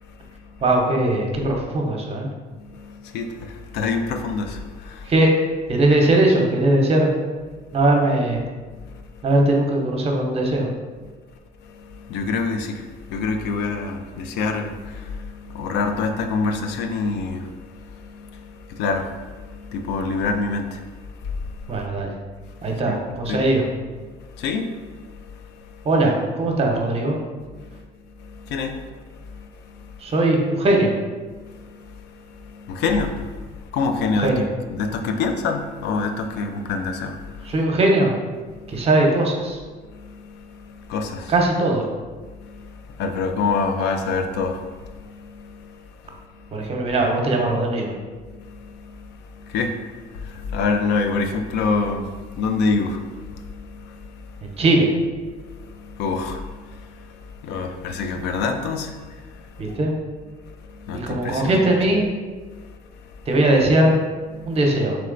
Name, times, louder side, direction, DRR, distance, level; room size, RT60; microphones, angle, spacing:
voice 1, 0.1-0.6 2.5-5.1 8.7-8.9 11.6-21.9 22.8-23.0 23.3-23.4 24.1-25.9 27.6-27.8 28.2-30.1 31.3-34.4 34.7-37.5 38.5-38.9 39.9-41.3 42.3-46.7 48.3-54.6 55.5-59.8 60.6-61.6 62.5-63.3 64.4-64.6, left 4 dB, 85° left, 0.4 m, -28 dB
voice 2, 0.6-2.3 5.1-5.3 5.7-7.1 7.7-8.4 9.2-10.7 21.7-22.1 22.6-23.7 25.8-27.2 30.0-30.9 34.1-34.4 37.4-38.1 38.7-39.6 41.3-41.8 46.5-47.9 54.4-54.9 59.6-59.9 60.9-62.0 63.3-63.9 64.5-65.0, right 2 dB, 35° right, 0.8 m, -19 dB
3.2 x 3.1 x 3.8 m
cardioid pair, 110°, 17 cm